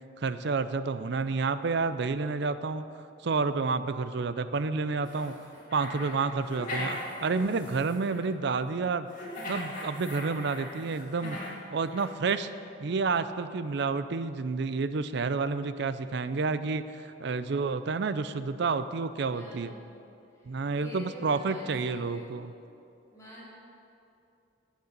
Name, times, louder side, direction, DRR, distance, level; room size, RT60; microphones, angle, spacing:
voice 1, 0.2-2.8 3.2-5.3 5.7-9.1 9.5-11.4 11.7-12.5 12.8-19.7 20.5-22.5, right 4 dB, 60° right, 13 dB, 0.5 m, -30 dB
sound 1, 5.0-8.2 9.1-11.6 11.9-12.1, left 1 dB, 45° left, 2.5 m, -39 dB
voice 2, 5.8-6.4 19.3-19.8 20.3-22.4 23.1-23.5, right 1 dB, 15° left, -8 dB, 3.2 m, -48 dB
12.0 x 8.2 x 6.7 m, 2.7 s
head